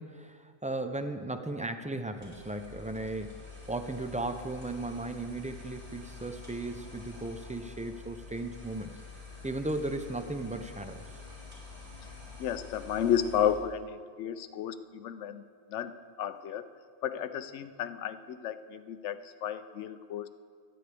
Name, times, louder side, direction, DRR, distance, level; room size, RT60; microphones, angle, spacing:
voice 1, 0.0-9.0 9.4-11.0, right 2 dB, 10° right, 7 dB, 0.3 m, -36 dB
sound 1, 2.1-13.7, left 4 dB, 50° right, 3.8 m, -47 dB
voice 2, 12.4-15.4 15.7-16.7 17.0-20.3, left 9 dB, 90° left, 12 dB, 0.9 m, -32 dB
26.0 x 9.8 x 3.4 m, 2.1 s
omnidirectional pair, 1.2 m